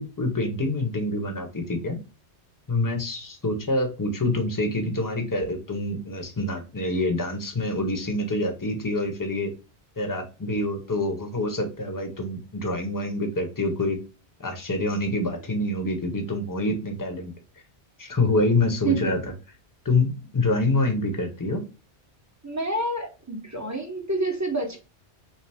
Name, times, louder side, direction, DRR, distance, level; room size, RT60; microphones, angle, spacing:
voice 1, 0.0-2.0 2.7-9.5 10.0-14.0 14.4-17.3 18.0-19.2 19.8-21.6, left 2 dB, 20° left, 3 dB, 0.8 m, -26 dB
voice 2, 18.8-19.1 22.4-24.8, right 2 dB, 15° right, 2 dB, 0.7 m, -28 dB
5.5 x 2.0 x 3.4 m, 0.31 s
omnidirectional pair, 1.2 m